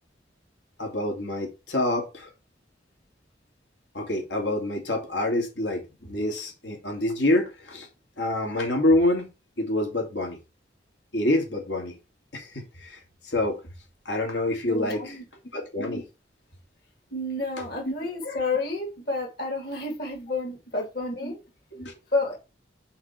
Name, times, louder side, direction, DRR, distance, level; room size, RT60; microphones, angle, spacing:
voice 1, 0.8-2.3 3.9-7.9 8.2-9.3 9.6-10.4 11.1-12.0 12.3-13.6 14.0-15.2 15.5-16.0 17.8-17.9 21.2-21.3 21.7-21.9, left 1 dB, 85° left, 2.8 m, -27 dB
voice 2, 14.7-15.2 17.1-21.4 22.1-22.4, left 2 dB, 60° left, 2.9 m, -30 dB
5.9 x 4.6 x 5.9 m
head